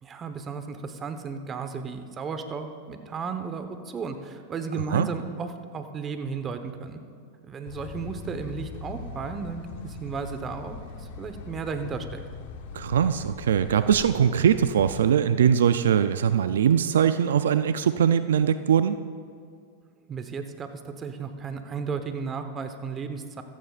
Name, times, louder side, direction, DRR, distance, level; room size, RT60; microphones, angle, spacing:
voice 1, 0.0-7.0 7.5-12.2 20.1-23.4, right 5 dB, 25° right, 8 dB, 1.1 m, -34 dB
sound 1, 7.7-15.0, left 5 dB, 65° left, 1.2 m, -41 dB
voice 2, 12.7-19.0, right 8 dB, 85° right, 11 dB, 0.4 m, -21 dB
15.0 x 14.0 x 2.5 m, 2.2 s
hypercardioid pair, 115°, 0 cm